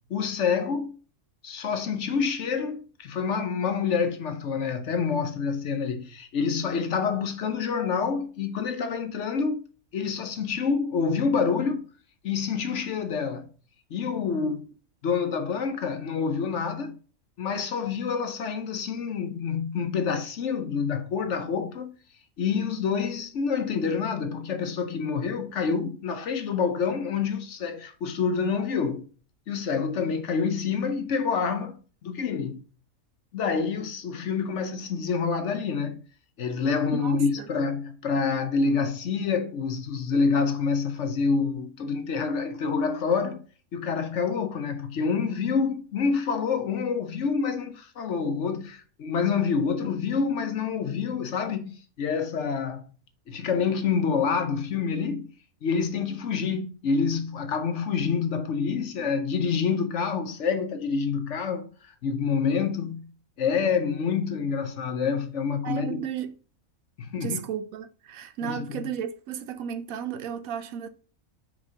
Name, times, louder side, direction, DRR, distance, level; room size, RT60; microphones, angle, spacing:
voice 1, 0.1-0.9 1.4-9.6 9.9-11.8 12.2-13.5 13.9-14.7 15.0-16.9 17.4-21.9 22.4-29.1 29.5-31.8 32.0-32.6 33.3-36.0 36.4-43.4 43.7-52.9 53.3-55.3 55.6-63.1 63.4-66.0 67.0-67.4 68.4-68.8, left 5 dB, 60° left, 1.0 m, -27 dB
voice 2, 36.9-37.5 65.6-66.3 67.2-70.9, right 8 dB, 75° right, 1.0 m, -34 dB
5.4 x 4.8 x 3.8 m
omnidirectional pair, 1.5 m